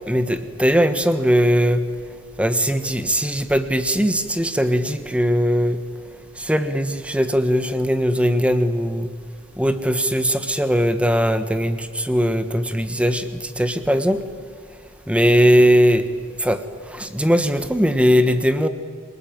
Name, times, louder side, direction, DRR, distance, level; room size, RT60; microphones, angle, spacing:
voice 1, 0.1-1.8 2.4-5.8 6.4-9.1 9.6-14.2 15.1-16.1 16.4-18.7, equal, 5° right, 9 dB, 1.4 m, -19 dB
28.0 x 19.5 x 8.9 m, 2.1 s
head